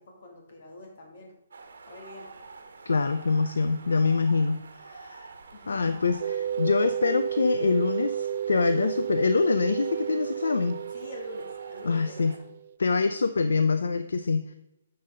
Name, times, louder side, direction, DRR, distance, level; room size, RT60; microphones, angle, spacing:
voice 1, 0.0-1.3 1.9-2.3 5.5-6.0 10.9-12.3, left 1 dB, 60° left, 1 dB, 2.5 m, -44 dB
sound 1, 1.5-12.4, right 4 dB, 75° right, 1.2 m, -47 dB
voice 2, 2.9-4.6 4.9-5.3 5.7-10.8 11.8-12.3 12.8-14.6, left 4 dB, 80° left, 10 dB, 0.5 m, -25 dB
sound 2, 6.2-12.8, right 9 dB, 55° right, 0.4 m, -32 dB
10.0 x 5.7 x 3.8 m, 0.89 s
hypercardioid pair, 140°, 0 cm